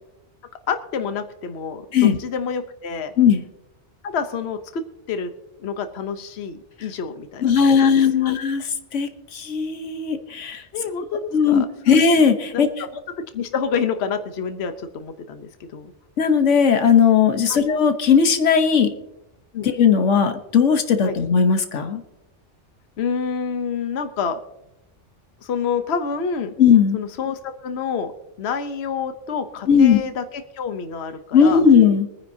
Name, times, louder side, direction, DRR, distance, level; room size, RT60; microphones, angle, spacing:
voice 1, 0.7-3.1 4.0-4.8 5.1-5.3 5.6-8.3 10.7-12.0 12.5-12.6 13.3-15.9 17.5-17.6 19.5-19.7 21.0-21.1 23.0-24.4 25.4-26.5 26.9-28.1 28.4-31.6, left 6 dB, 65° left, 9 dB, 1.1 m, -28 dB
voice 2, 7.4-10.6 11.3-12.7 16.2-18.9 19.6-22.0 26.6-27.0 29.7-30.0 31.3-32.1, left 6 dB, 90° left, 8 dB, 1.4 m, -17 dB
24.5 x 9.8 x 2.7 m, 0.89 s
omnidirectional pair, 1.2 m